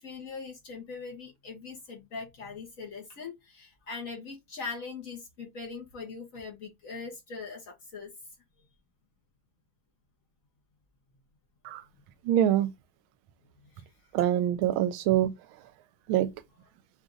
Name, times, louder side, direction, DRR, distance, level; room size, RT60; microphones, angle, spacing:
voice 1, 0.0-8.1 13.7-13.8, left 4 dB, 50° left, 1.2 m, -41 dB
voice 2, 12.2-12.7 14.1-15.3 16.1-16.3, right 11 dB, 85° right, 1.4 m, -24 dB
4.7 x 2.5 x 3.8 m
omnidirectional pair, 2.2 m